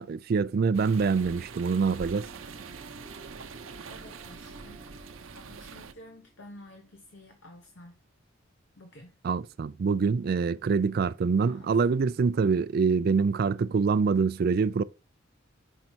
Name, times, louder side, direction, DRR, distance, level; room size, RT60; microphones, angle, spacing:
voice 1, 0.0-2.3 9.2-14.8, right 5 dB, 50° right, 0.3 m, -25 dB
sound 1, 0.7-5.9, right 5 dB, 80° right, 0.7 m, -44 dB
sound 2, 1.1-7.0, right 2 dB, 25° right, 0.8 m, -53 dB
voice 2, 3.9-8.0 8.8-9.2 11.4-12.1, left 1 dB, 65° left, 1.1 m, -51 dB
5.4 x 5.4 x 4.4 m
head